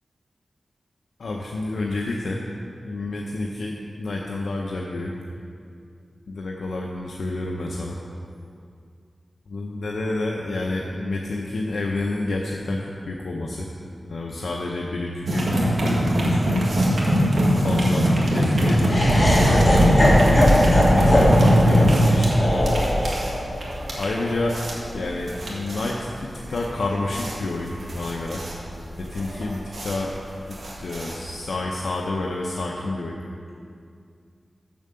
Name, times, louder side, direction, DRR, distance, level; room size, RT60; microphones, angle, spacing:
voice 1, 1.2-2.4 2.8-5.1 6.3-8.0 9.5-13.7 14.0-16.6 17.3-20.0 20.3-22.7 24.0-24.6 24.9-28.4 28.9-30.1 30.8-33.2, left 2 dB, 80° left, -1 dB, 0.7 m, -29 dB
sound 1, 15.3-31.6, equal, 75° right, 1.8 m, -21 dB
Laughter, 18.8-25.0, left 1 dB, 25° left, 1.9 m, -21 dB
7.2 x 6.7 x 7.4 m, 2.4 s
wide cardioid pair, 90°, 0 cm